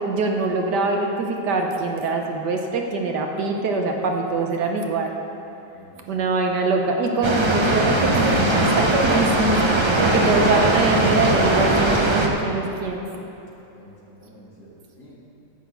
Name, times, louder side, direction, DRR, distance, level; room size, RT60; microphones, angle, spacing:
voice 1, 0.0-5.1 6.1-9.6 10.0-13.0, right 3 dB, 65° right, 2 dB, 1.4 m, -23 dB
voice 2, 5.7-6.0 13.7-15.2, equal, 55° left, -5 dB, 2.6 m, -48 dB
Water, 7.2-12.3, right 2 dB, 35° right, 0.4 m, -20 dB
10.5 x 6.4 x 8.0 m, 2.9 s
omnidirectional pair, 2.0 m